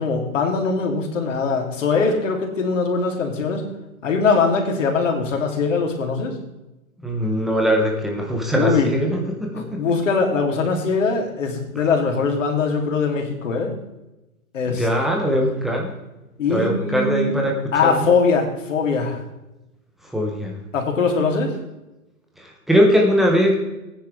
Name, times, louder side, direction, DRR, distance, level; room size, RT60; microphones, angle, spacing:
voice 1, 0.0-3.6 4.0-6.3 8.6-8.9 9.5-13.7 14.5-14.9 15.1-15.2 16.4-17.3 17.7-19.2 20.7-21.5, left 4 dB, 60° left, 2 dB, 3.0 m, -21 dB
voice 2, 7.0-9.8 14.7-15.9 16.5-17.5 17.8-18.1 20.1-20.5 22.4-23.6, equal, ahead, 0 dB, 0.6 m, -20 dB
17.0 x 9.8 x 3.4 m, 0.97 s
hypercardioid pair, 145°, 42 cm